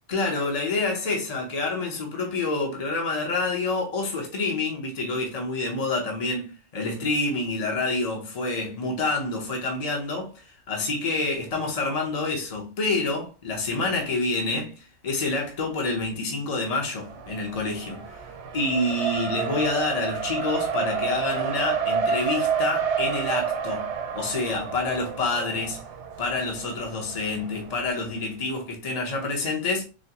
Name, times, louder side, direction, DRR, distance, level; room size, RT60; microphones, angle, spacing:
voice 1, 0.1-18.2 18.5-25.8 26.2-29.8, left 3 dB, 35° left, 0.9 m, -28 dB
Race car auto racing, 17.0-28.0, right 6 dB, 65° right, 0.9 m, -30 dB
3.8 x 3.1 x 2.8 m
omnidirectional pair, 1.4 m